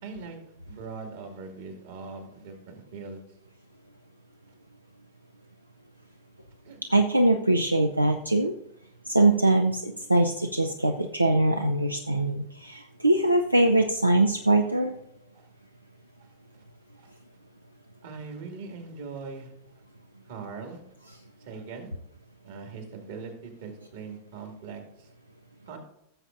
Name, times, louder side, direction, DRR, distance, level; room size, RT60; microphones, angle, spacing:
voice 1, 0.0-0.4 0.7-3.2 6.6-6.8 15.3-15.5 16.2-16.3 17.0-17.1 18.0-19.5 20.3-20.8 21.4-21.9 22.4-25.1 25.7-25.8, right 4 dB, 55° right, 4 dB, 2.2 m, -41 dB
voice 2, 6.9-8.5 9.1-14.9, right 2 dB, 85° right, 5 dB, 0.5 m, -22 dB
16.0 x 7.2 x 2.6 m, 0.81 s
figure-of-eight pair, 90°, 0 cm